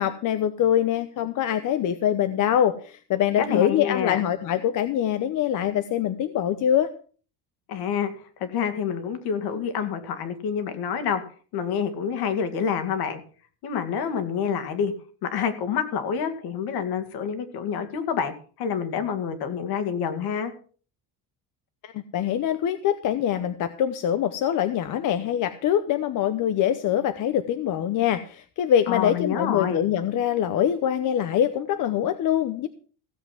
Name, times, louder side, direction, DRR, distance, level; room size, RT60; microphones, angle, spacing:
voice 1, 0.0-6.9 21.8-32.7, left 10 dB, 50° left, 10 dB, 0.9 m, -24 dB
voice 2, 3.4-4.3 7.7-11.2 11.5-13.2 13.6-14.9 15.2-20.5 28.9-29.8, left 7 dB, 65° left, 8 dB, 2.2 m, -28 dB
16.0 x 7.6 x 5.9 m, 0.41 s
cardioid pair, 165°, 41 cm